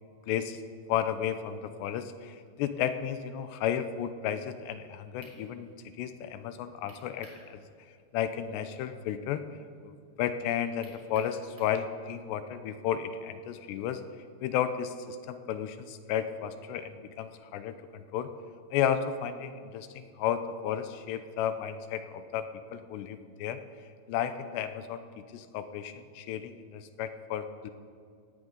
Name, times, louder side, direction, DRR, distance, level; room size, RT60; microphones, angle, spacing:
voice 1, 0.3-0.6 0.9-5.7 6.0-7.6 8.1-9.4 9.8-14.0 14.4-18.3 18.7-23.6 24.1-27.7, left 9 dB, 85° left, 10 dB, 2.9 m, -33 dB
sound 1, 5.2-5.4 6.9-7.4 7.8-7.9 10.8-11.8, equal, 5° right, 3.2 m, -54 dB
18.5 x 17.0 x 4.0 m, 2.3 s
omnidirectional pair, 5.0 m